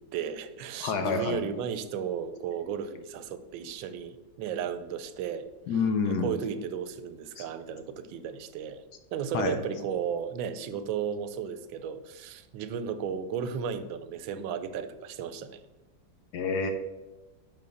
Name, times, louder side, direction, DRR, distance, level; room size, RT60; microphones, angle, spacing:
voice 1, 0.0-5.5 6.1-8.8 9.1-15.6, right 7 dB, 85° right, 12 dB, 1.3 m, -34 dB
voice 2, 0.8-1.4 5.7-6.3 7.4-7.5 9.3-9.6 16.3-16.7, left 5 dB, 65° left, 7 dB, 1.1 m, -28 dB
7.7 x 3.9 x 6.2 m, 1.1 s
omnidirectional pair, 2.1 m